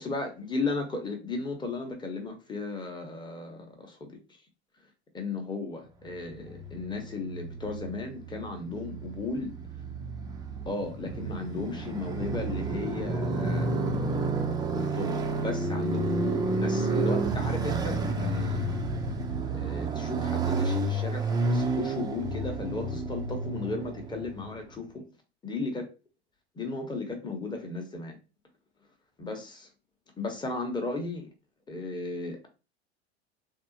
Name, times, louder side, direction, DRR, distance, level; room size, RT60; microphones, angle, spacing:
voice 1, 0.0-4.2 5.1-9.6 10.7-14.1 14.7-18.8 19.5-25.1 25.4-25.8 26.6-28.2 29.2-29.7 30.2-31.3 31.7-32.5, left 3 dB, 15° left, 0.8 m, -35 dB
Motorcycle, 6.4-24.6, right 2 dB, 10° right, 0.4 m, -30 dB
3.4 x 2.0 x 2.8 m
hypercardioid pair, 85°, 33 cm